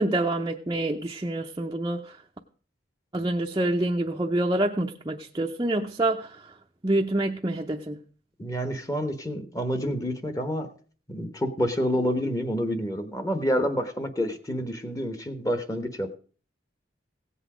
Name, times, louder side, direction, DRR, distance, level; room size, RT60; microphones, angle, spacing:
voice 1, 0.0-2.2 3.1-6.5 6.8-8.0, right 1 dB, 20° right, 0.6 m, -27 dB
voice 2, 8.4-10.7 11.1-16.2, equal, 15° left, 1.1 m, -28 dB
16.5 x 8.2 x 4.9 m
head